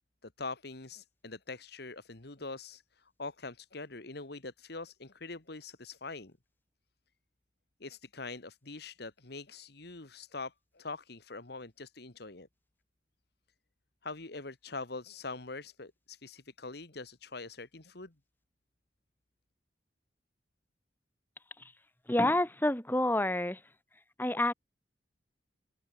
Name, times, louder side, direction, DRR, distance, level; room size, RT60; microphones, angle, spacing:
voice 1, 0.2-6.3 7.8-12.5 14.0-18.1, left 3 dB, 60° left, 2.0 m, -43 dB
voice 2, 22.1-23.6 24.2-24.5, left 1 dB, 10° left, 1.4 m, -28 dB
head